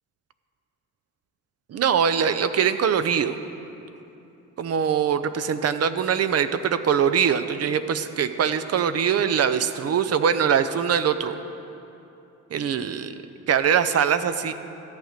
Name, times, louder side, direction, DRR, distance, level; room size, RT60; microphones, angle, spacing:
voice 1, 1.7-3.4 4.6-11.3 12.5-13.1 13.5-14.5, right 7 dB, 55° right, 11 dB, 0.7 m, -22 dB
13.5 x 8.9 x 6.6 m, 2.9 s
cardioid pair, 90°, 30 cm